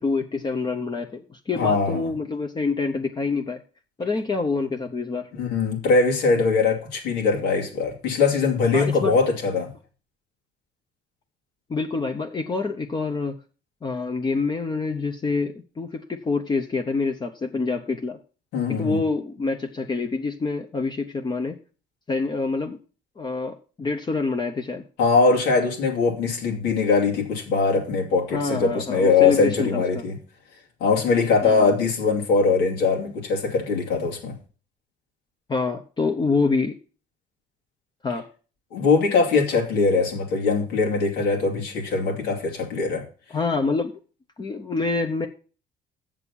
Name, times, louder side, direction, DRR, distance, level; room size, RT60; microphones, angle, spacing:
voice 1, 0.0-3.6 4.0-5.3 8.7-9.1 11.7-13.4 13.8-18.2 18.7-21.6 22.1-22.8 23.2-24.8 28.3-30.0 31.4-31.7 35.5-36.8 38.0-38.3 43.3-43.9 44.4-45.3, left 4 dB, 25° left, 4 dB, 0.9 m, -26 dB
voice 2, 1.5-2.1 5.3-9.7 18.5-19.0 25.0-30.2 30.8-34.4 38.7-43.0, left 4 dB, 90° left, 0 dB, 2.7 m, -21 dB
7.4 x 6.6 x 7.0 m, 0.37 s
cardioid pair, 110°, 17 cm